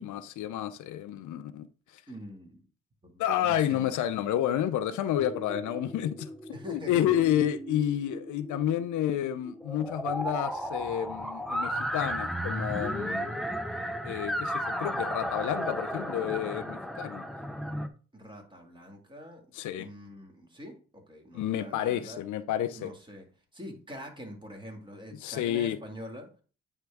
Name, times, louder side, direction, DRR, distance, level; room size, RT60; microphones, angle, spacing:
voice 1, 0.0-1.7 3.2-6.3 6.7-13.4 14.0-17.2 19.5-19.9 21.3-22.9 25.2-25.8, left 11 dB, 75° left, 0.6 m, -30 dB
voice 2, 2.1-2.6 3.0-4.0 6.5-7.2 18.1-19.4 19.8-22.2 22.8-23.3 23.5-26.3, equal, 15° right, 2.0 m, -44 dB
sound 1, 5.2-17.9, equal, ahead, 0.6 m, -35 dB
9.1 x 3.6 x 3.5 m
cardioid pair, 90°, 30 cm